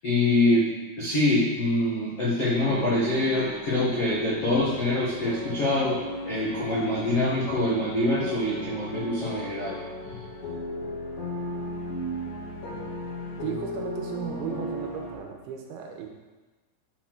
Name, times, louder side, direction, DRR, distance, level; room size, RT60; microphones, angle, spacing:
voice 1, 0.0-6.0 6.3-9.8, left 1 dB, 75° left, -8 dB, 1.3 m, -25 dB
sound 1, 2.6-15.1, left 1 dB, 60° left, 2.6 m, -36 dB
voice 2, 13.4-16.1, right 8 dB, 80° right, 2 dB, 3.1 m, -35 dB
7.1 x 7.0 x 6.0 m, 1.2 s
omnidirectional pair, 5.7 m